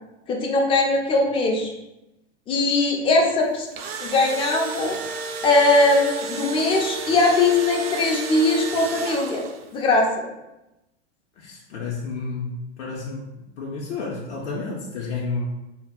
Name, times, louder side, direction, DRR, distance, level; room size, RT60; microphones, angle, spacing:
voice 1, 0.3-1.7 2.5-3.7 4.0-5.0 5.4-9.4 9.7-10.3, left 2 dB, 15° left, 1 dB, 0.3 m, -20 dB
Engine / Drill, 3.5-9.7, right 5 dB, 60° right, 0.4 m, -32 dB
voice 2, 11.4-13.3 13.6-15.5, left 4 dB, 75° left, -3 dB, 0.6 m, -31 dB
2.2 x 2.0 x 3.4 m, 0.95 s
hypercardioid pair, 95°, 34 cm